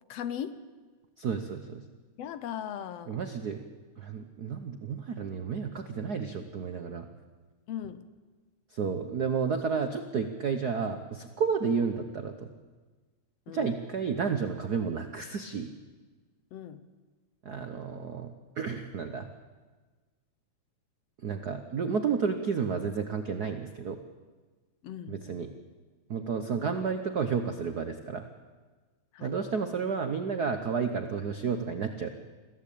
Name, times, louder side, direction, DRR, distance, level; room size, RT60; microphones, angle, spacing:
voice 1, 0.1-0.7 2.2-3.2 7.7-8.1 13.5-13.7 16.5-16.9 24.8-25.2 29.1-29.3, left 9 dB, 70° left, 12 dB, 1.8 m, -38 dB
voice 2, 1.2-1.8 3.1-3.7 4.0-7.1 8.7-12.5 13.5-15.7 17.4-19.3 21.2-24.0 25.1-25.5 26.1-28.3 29.2-32.1, right 5 dB, 90° right, 6 dB, 0.8 m, -31 dB
22.5 x 15.5 x 8.6 m, 1.4 s
omnidirectional pair, 3.3 m